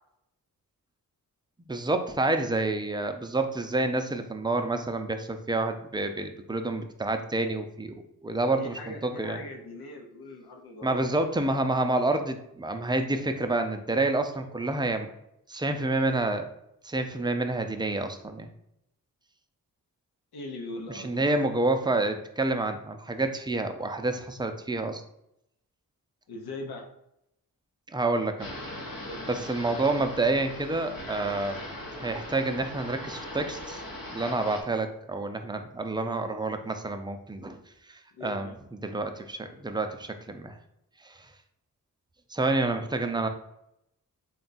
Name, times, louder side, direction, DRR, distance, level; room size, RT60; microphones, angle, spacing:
voice 1, 1.7-7.9 8.2-9.4 10.8-15.1 15.5-16.5 16.8-18.5 20.9-25.0 27.9-28.5 29.3-31.6 31.9-33.8 34.1-37.6 37.9-40.6 41.0-41.2 42.3-43.3, right 2 dB, 10° right, 7 dB, 0.4 m, -28 dB
voice 2, 8.6-11.1 20.3-21.4 26.3-26.8 29.0-29.3 38.1-38.6, left 2 dB, 90° left, 2 dB, 0.8 m, -40 dB
sound 1, 28.4-34.6, left 1 dB, 65° left, 0.9 m, -39 dB
3.5 x 2.3 x 4.0 m, 0.79 s
cardioid pair, 65°, 37 cm